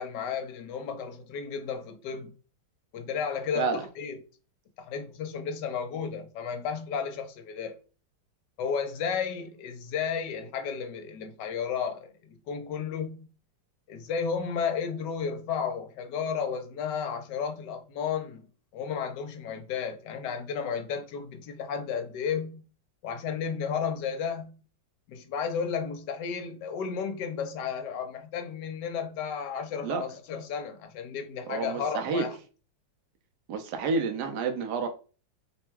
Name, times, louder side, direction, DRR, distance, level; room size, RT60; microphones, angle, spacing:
voice 1, 0.0-2.3 2.9-4.2 4.8-7.8 8.6-13.3 13.9-18.4 18.7-22.7 23.0-24.6 25.1-32.4, left 6 dB, 75° left, 1.2 m, -33 dB
voice 2, 31.5-32.3 33.5-34.9, right 4 dB, 70° right, 1.2 m, -29 dB
3.4 x 2.2 x 4.4 m
omnidirectional pair, 2.0 m